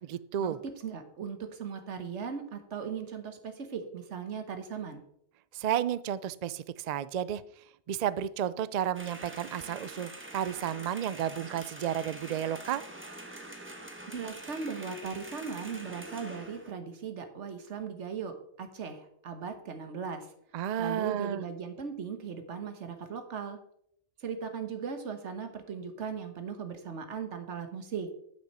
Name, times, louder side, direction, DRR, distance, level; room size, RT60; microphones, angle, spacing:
voice 1, 0.1-0.6 5.5-7.4 7.9-12.8 20.5-21.4, right 10 dB, 65° right, 17 dB, 0.4 m, -32 dB
voice 2, 0.8-5.0 14.1-20.3 20.8-23.6 24.2-28.1, right 6 dB, 85° right, 8 dB, 1.4 m, -38 dB
sound 1, 8.9-16.7, right 1 dB, 10° right, 1.0 m, -45 dB
8.7 x 6.2 x 5.4 m, 0.71 s
omnidirectional pair, 1.2 m